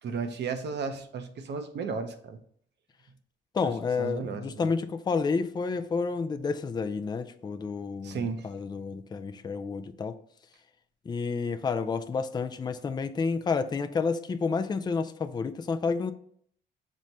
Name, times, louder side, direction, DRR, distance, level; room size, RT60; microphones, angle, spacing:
voice 1, 0.0-2.4 3.6-3.7 4.0-4.7 8.0-8.5, right 5 dB, 60° right, 0.7 m, -34 dB
voice 2, 3.5-10.2 11.1-16.1, left 5 dB, 20° left, 0.3 m, -30 dB
6.2 x 2.1 x 4.0 m
cardioid pair, 90°, 20 cm